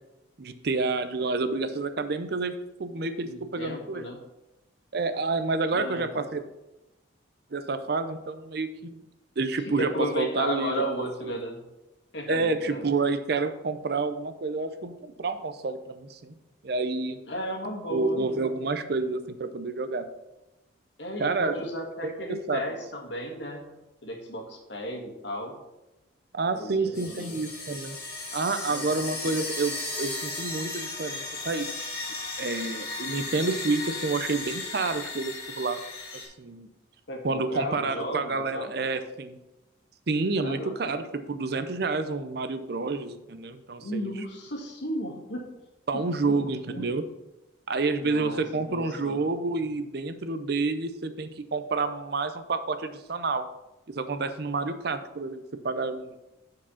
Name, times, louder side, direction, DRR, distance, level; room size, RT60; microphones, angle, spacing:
voice 1, 0.4-2.5 2.8-4.0 4.9-6.4 7.5-9.0 9.4-10.8 11.2-11.3 12.3-16.3 16.6-17.2 17.9-20.1 21.2-21.6 22.0-22.7 26.3-28.0 28.3-31.7 32.4-35.8 36.1-36.7 37.2-39.4 40.1-44.1 45.9-47.0 47.7-53.4 53.9-56.2, right 3 dB, 55° right, 10 dB, 0.5 m, -29 dB
voice 2, 3.2-4.2 5.7-6.1 9.6-11.6 12.1-12.9 17.3-18.2 21.0-23.6 24.0-25.6 26.5-27.3 28.7-28.9 37.1-38.7 40.4-40.9 43.8-45.5 45.9-46.0 46.3-46.4 46.7-46.8 48.0-49.2, equal, 70° left, 1 dB, 1.7 m, -34 dB
sound 1, 26.9-36.2, left 3 dB, 50° left, 2.5 m, -35 dB
7.4 x 4.7 x 5.7 m, 0.97 s
head